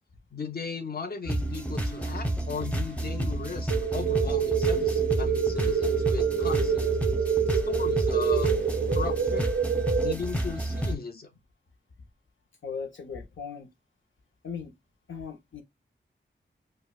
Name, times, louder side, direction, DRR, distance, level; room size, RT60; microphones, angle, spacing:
voice 1, 0.3-7.0 7.5-8.6 8.9-9.5 10.0-11.3, left 5 dB, 50° left, 0.8 m, -36 dB
sound 1, 1.3-11.0, right 1 dB, 5° left, 0.8 m, -30 dB
sound 2, 3.7-10.1, right 7 dB, 65° right, 0.5 m, -26 dB
voice 2, 12.6-13.7 14.4-14.8 15.1-15.6, left 6 dB, 80° left, 0.8 m, -38 dB
5.0 x 2.2 x 2.3 m
wide cardioid pair, 80°, 20 cm